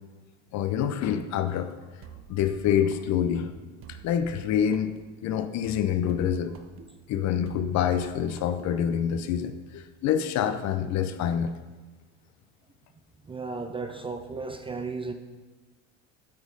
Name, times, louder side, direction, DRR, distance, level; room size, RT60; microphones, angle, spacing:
voice 1, 0.5-1.7 2.3-3.5 3.9-4.9 5.2-6.5 7.1-11.5, left 9 dB, 45° left, 10 dB, 0.7 m, -26 dB
sound 1, 2.0-9.2, right 7 dB, 35° right, 0.8 m, -49 dB
voice 2, 13.3-15.1, right 4 dB, 15° right, 7 dB, 0.5 m, -34 dB
8.8 x 6.1 x 4.0 m, 1.3 s
hypercardioid pair, 85°, 37 cm